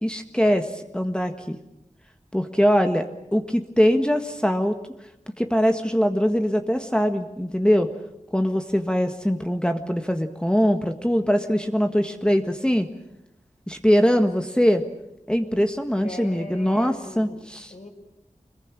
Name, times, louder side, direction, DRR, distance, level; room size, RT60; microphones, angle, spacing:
voice 1, 0.0-1.6 2.3-4.8 5.4-7.9 8.3-12.9 13.7-14.8 15.3-17.7, equal, 5° left, 5 dB, 1.6 m, -22 dB
voice 2, 16.0-17.4 17.7-17.9, left 1 dB, 65° left, 3 dB, 5.6 m, -39 dB
26.0 x 21.5 x 9.0 m, 0.83 s
wide cardioid pair, 55°, 13 cm